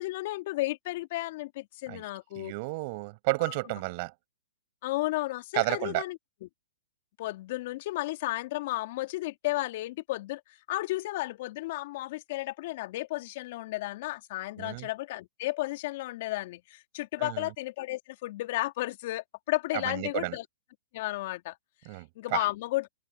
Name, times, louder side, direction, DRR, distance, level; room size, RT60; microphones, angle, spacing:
voice 1, 0.0-2.5 3.4-3.5 4.8-6.5 7.2-10.4 10.7-20.4 20.9-21.6 22.2-22.9, left 18 dB, 50° left, 2.4 m, -33 dB
voice 2, 2.4-4.1 5.5-6.0 14.6-14.9 17.2-17.5 19.7-20.4 21.8-22.5, right 27 dB, 45° right, 6.0 m, -32 dB
hypercardioid pair, 125°, 0 cm